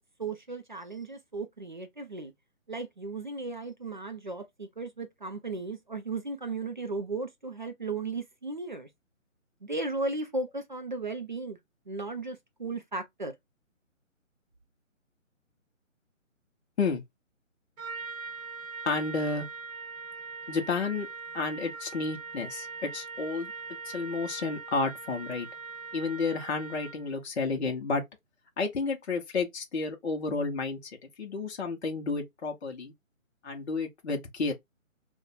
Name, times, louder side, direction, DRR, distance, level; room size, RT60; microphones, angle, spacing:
voice 1, 0.2-2.3 2.7-8.9 9.6-11.6 11.9-13.3, right 3 dB, 40° right, 0.4 m, -35 dB
Trumpet, 17.8-27.1, right 4 dB, 85° right, 1.1 m, -41 dB
voice 2, 18.8-19.5 20.5-21.1 21.3-23.5 23.8-25.5 25.9-28.0 28.6-32.9 33.4-34.5, left 4 dB, 55° left, 0.8 m, -31 dB
2.6 x 2.2 x 4.0 m
figure-of-eight pair, 155°, 40 cm